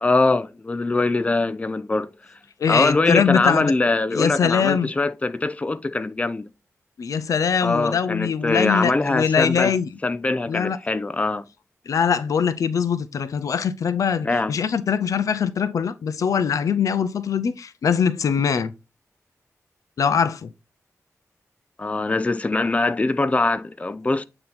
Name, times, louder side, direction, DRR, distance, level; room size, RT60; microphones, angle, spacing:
voice 1, 0.0-2.1 2.7-6.5 7.6-9.7 10.0-11.5 14.2-14.5 21.8-24.2, left 3 dB, 25° left, 0.4 m, -22 dB
voice 2, 2.6-3.7 4.1-4.9 7.0-9.9 10.5-10.8 11.9-18.7 20.0-20.5, left 7 dB, 90° left, 0.5 m, -22 dB
8.5 x 2.9 x 3.9 m
wide cardioid pair, 95°, 6 cm